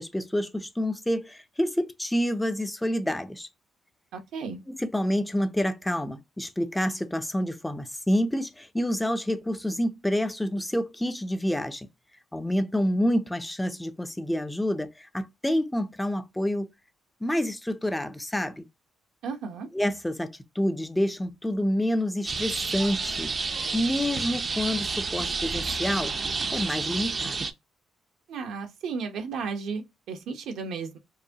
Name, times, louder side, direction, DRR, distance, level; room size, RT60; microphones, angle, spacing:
voice 1, 0.0-3.5 4.7-11.9 12.3-16.7 17.2-18.6 19.7-23.3 23.7-26.1 26.5-27.4, equal, 10° left, 0.5 m, -28 dB
voice 2, 4.1-4.6 19.2-19.7 28.3-31.0, right 5 dB, 80° right, 0.9 m, -34 dB
sound 1, 22.3-27.5, right 4 dB, 40° right, 0.5 m, -30 dB
4.7 x 2.2 x 2.8 m
cardioid pair, 90°, 0 cm